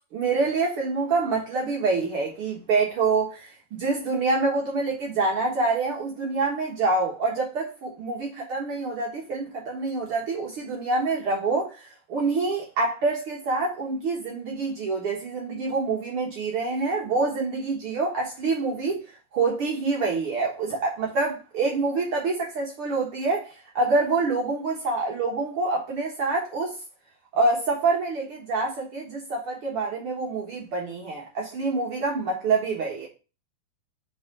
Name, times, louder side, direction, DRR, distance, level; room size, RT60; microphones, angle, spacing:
voice 1, 0.1-19.0 19.3-26.7 27.3-33.1, right 3 dB, 80° right, 1.2 m, -26 dB
7.2 x 3.5 x 6.0 m
omnidirectional pair, 4.7 m